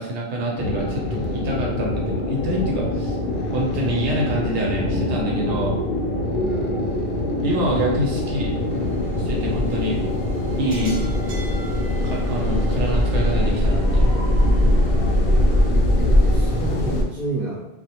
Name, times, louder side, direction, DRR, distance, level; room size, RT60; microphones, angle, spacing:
voice 1, 0.0-3.2 3.5-5.8 7.4-8.6 9.2-10.0 10.6-11.1 12.0-14.1, right 1 dB, 90° right, -2 dB, 1.0 m, -26 dB
sound 1, 0.6-17.0, left 1 dB, 60° left, 0.7 m, -22 dB
voice 2, 6.4-6.9 15.9-17.6, right 2 dB, ahead, -7 dB, 0.4 m, -30 dB
sound 2, 8.7-15.7, equal, 65° right, 0.7 m, -37 dB
2.1 x 2.1 x 2.8 m, 0.89 s
omnidirectional pair, 1.2 m